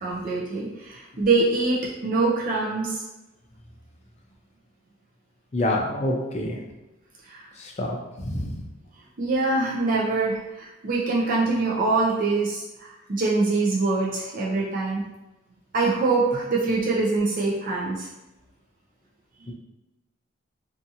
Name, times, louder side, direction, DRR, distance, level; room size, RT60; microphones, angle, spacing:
voice 1, 0.0-3.0 7.3-7.5 9.2-15.0 15.7-18.1, right 3 dB, 45° right, -5 dB, 0.5 m, -24 dB
voice 2, 5.5-6.6 7.6-8.6 19.5-19.6, left 1 dB, 35° left, 0 dB, 0.4 m, -27 dB
2.6 x 2.4 x 2.6 m, 1.0 s
head